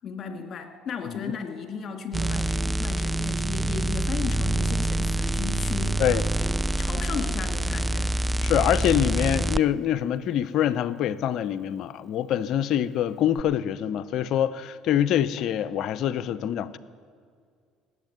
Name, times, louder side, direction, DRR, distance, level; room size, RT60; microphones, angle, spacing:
voice 1, 0.0-8.3, left 5 dB, 45° left, 2.2 m, -35 dB
sound 1, 2.1-9.6 13.4-13.5, right 1 dB, 10° right, 0.4 m, -26 dB
voice 2, 8.4-16.8, left 10 dB, 60° left, 0.6 m, -25 dB
18.5 x 8.1 x 9.2 m
hypercardioid pair, 70°, 0 cm